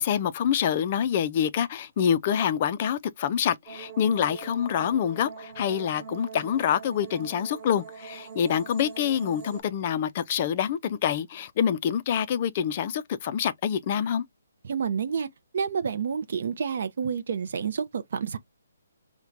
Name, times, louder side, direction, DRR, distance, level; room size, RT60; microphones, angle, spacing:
voice 1, 0.0-14.2, left 8 dB, 30° left, 0.4 m, -26 dB
sound 1, 3.7-9.6, right 6 dB, 15° right, 1.1 m, -43 dB
voice 2, 14.6-15.3 15.5-18.4, right 6 dB, 55° right, 0.5 m, -29 dB
4.4 x 2.1 x 2.5 m
hypercardioid pair, 165°, 0 cm